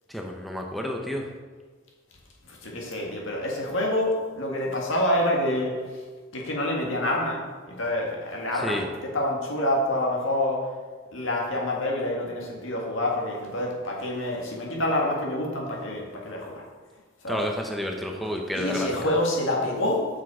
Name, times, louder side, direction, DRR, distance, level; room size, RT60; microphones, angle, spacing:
voice 1, 0.1-1.3 8.6-8.9 17.3-18.9, equal, ahead, 1 dB, 0.7 m, -30 dB
voice 2, 2.5-5.8 6.3-8.9 9.1-10.7 11.1-16.6 17.2-17.4 18.5-20.1, left 1 dB, 75° left, -1 dB, 1.9 m, -27 dB
7.3 x 6.1 x 4.8 m, 1.4 s
head